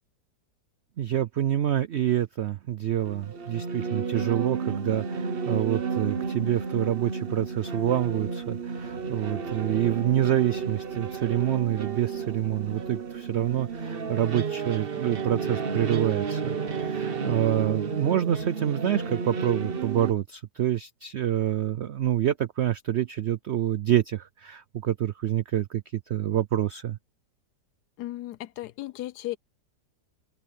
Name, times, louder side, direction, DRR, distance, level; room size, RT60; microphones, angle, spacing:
voice 1, 1.0-27.0, right 11 dB, 80° right, 0.6 m, -27 dB
sound 1, 3.0-20.1, right 5 dB, 40° right, 1.1 m, -32 dB
voice 2, 28.0-29.4, left 15 dB, 75° left, 1.2 m, -35 dB
open air
omnidirectional pair, 1.8 m